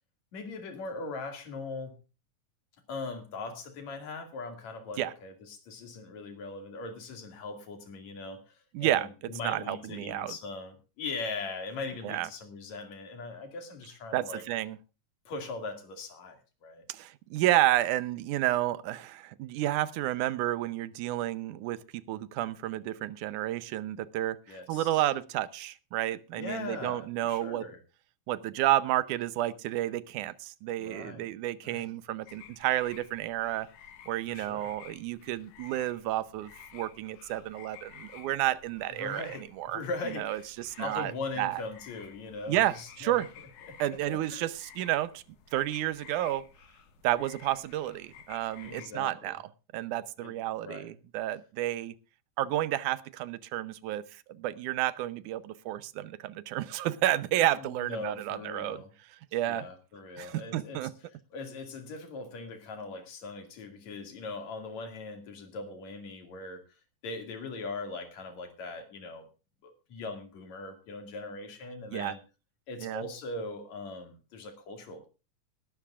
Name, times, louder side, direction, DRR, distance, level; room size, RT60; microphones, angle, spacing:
voice 1, 0.3-2.0 2.9-8.5 8.8-14.4 15.2-16.8 24.5-25.0 26.3-27.8 30.8-31.3 31.6-31.9 34.3-34.7 38.9-40.5 40.8-43.2 43.7-43.8 44.1-44.5 48.6-49.4 50.2-50.3 50.6-50.9 57.6-58.9 59.4-60.9 61.3-66.6 67.0-69.3 69.6-72.2 72.7-75.1, left 3 dB, 65° left, 6 dB, 3.5 m, -40 dB
voice 2, 8.7-9.1 9.4-10.3 12.0-12.3 14.1-14.8 16.9-21.8 22.1-27.7 28.3-33.7 34.1-39.8 40.2-41.1 41.4-41.6 42.5-43.3 43.8-45.2 45.5-46.5 47.0-49.4 49.7-51.9 52.4-58.8 59.3-59.6 60.2-60.9 71.9-72.1 72.8-73.0, right 14 dB, 85° right, 16 dB, 2.2 m, -31 dB
sound 1, 32.3-48.9, left 9 dB, 90° left, 3.1 m, -53 dB
19.5 x 12.5 x 2.4 m, 0.31 s
omnidirectional pair, 3.5 m